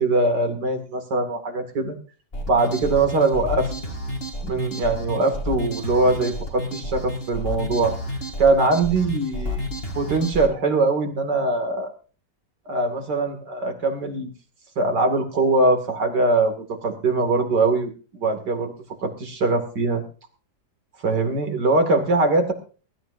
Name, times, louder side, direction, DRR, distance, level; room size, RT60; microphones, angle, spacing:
voice 1, 0.0-1.9 2.5-3.7 4.4-7.9 8.4-9.6 9.9-11.9 12.7-14.3 14.8-18.7 19.0-20.0 21.0-22.5, right 3 dB, 80° right, 4 dB, 2.9 m, -22 dB
sound 1, 2.3-10.5, left 1 dB, 35° left, 3.2 m, -30 dB
23.0 x 12.5 x 2.6 m, 0.37 s
omnidirectional pair, 1.8 m